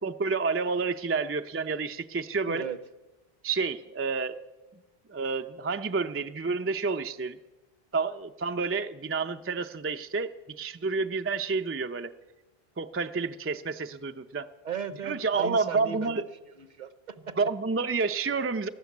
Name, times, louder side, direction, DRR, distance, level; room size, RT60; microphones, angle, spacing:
voice 1, 0.0-2.7 3.4-4.4 5.1-7.4 7.9-12.1 12.8-14.5 15.0-16.3 17.4-18.7, right 4 dB, 25° right, 8 dB, 0.3 m, -29 dB
voice 2, 2.5-2.8 14.6-16.2 16.6-17.3, right 7 dB, 50° right, 14 dB, 0.8 m, -37 dB
13.5 x 12.5 x 8.3 m, 1.1 s
omnidirectional pair, 1.0 m